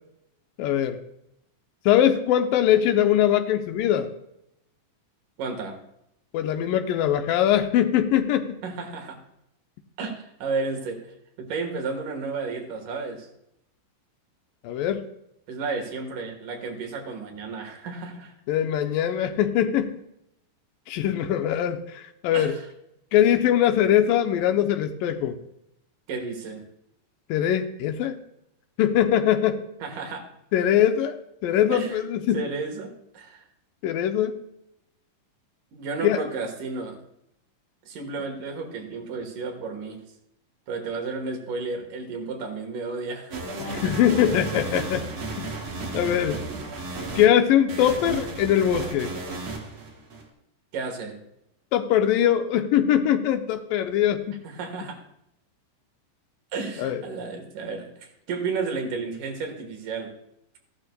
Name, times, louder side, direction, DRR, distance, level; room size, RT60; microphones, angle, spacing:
voice 1, 0.6-1.0 1.9-4.1 6.3-8.6 14.6-15.1 18.5-20.0 20.9-22.5 23.1-25.4 27.3-28.2 28.8-29.6 30.5-32.4 33.8-34.4 36.0-36.2 43.6-45.0 45.4-45.5 45.9-46.4 47.2-49.1 51.7-54.4 56.8-57.0, left 10 dB, 85° left, 7 dB, 2.3 m, -22 dB
voice 2, 5.4-5.8 8.6-9.2 10.0-11.0 11.4-13.3 15.5-18.3 22.3-22.7 26.1-26.7 29.8-30.3 31.7-32.0 32.3-33.4 35.7-37.0 37.9-40.0 40.7-43.4 46.5-46.6 50.7-51.2 54.4-55.0 56.5-60.2, right 4 dB, 70° right, 3 dB, 2.9 m, -32 dB
sound 1, 43.3-47.3 47.7-50.2, right 2 dB, 45° right, 2.0 m, -33 dB
15.0 x 11.5 x 2.2 m, 0.79 s
omnidirectional pair, 4.0 m